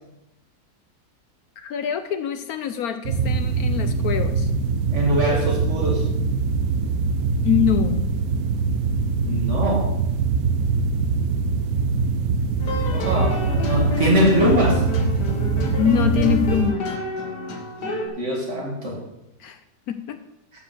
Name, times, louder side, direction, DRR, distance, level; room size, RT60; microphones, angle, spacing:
voice 1, 1.6-4.5 7.4-8.1 15.8-16.9 19.4-19.6 19.9-20.2, left 8 dB, 70° left, 9 dB, 1.2 m, -24 dB
sound 1, 3.1-16.7, right 4 dB, 70° right, 1.1 m, -23 dB
voice 2, 4.9-6.1 9.2-9.9 12.9-14.8 18.2-19.0, equal, 45° right, -1 dB, 2.8 m, -22 dB
sound 2, 12.6-18.1, left 3 dB, 85° left, 2.0 m, -29 dB
11.0 x 5.2 x 7.5 m, 0.89 s
omnidirectional pair, 1.7 m